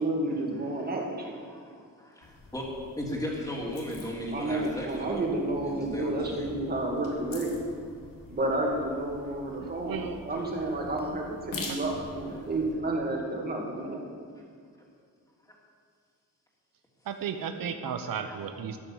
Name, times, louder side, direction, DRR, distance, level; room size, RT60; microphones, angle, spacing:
voice 1, 0.0-1.3 4.3-7.5 8.3-14.0, right 2 dB, 30° right, -1 dB, 2.4 m, -30 dB
voice 2, 1.2-2.6 3.0-5.2 5.6-6.5 10.0-10.8 11.5-11.6 18.2-18.4, left 1 dB, 10° left, -3 dB, 2.9 m, -37 dB
sound 1, 2.2-12.7, left 3 dB, 80° left, 3.0 m, -45 dB
voice 3, 9.6-10.2 11.7-11.8 17.0-18.8, right 7 dB, 85° right, 7 dB, 1.1 m, -35 dB
13.5 x 10.5 x 7.2 m, 2.1 s
wide cardioid pair, 155°, 33 cm